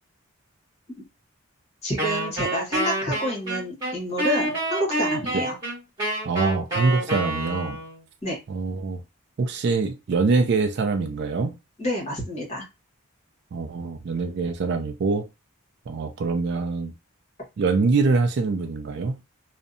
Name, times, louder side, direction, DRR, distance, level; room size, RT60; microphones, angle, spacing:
voice 1, 1.8-5.6 8.2-8.4 11.8-12.7, equal, 30° left, 1.1 m, -28 dB
Wind instrument woodwind instrument, 2.0-8.0, right 1 dB, 20° right, 1.5 m, -28 dB
voice 2, 6.3-7.8 8.5-9.0 9.4-11.5 13.5-15.3 15.9-16.9 17.6-19.2, right 4 dB, 50° right, 0.3 m, -24 dB
2.6 x 2.1 x 2.5 m
head